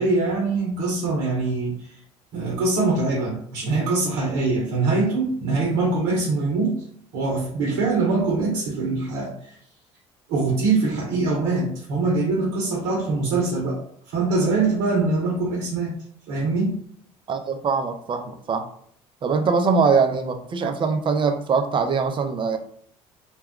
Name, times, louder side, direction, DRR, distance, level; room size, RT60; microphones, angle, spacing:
voice 1, 0.0-1.8 2.3-6.8 7.1-9.3 10.3-13.8 14.1-15.9 16.3-16.8, right 3 dB, 80° right, -2 dB, 0.8 m, -23 dB
voice 2, 17.3-18.7 19.2-22.6, right 5 dB, 40° right, 7 dB, 0.5 m, -22 dB
2.3 x 2.1 x 3.6 m, 0.62 s
supercardioid pair, 75°, 13 cm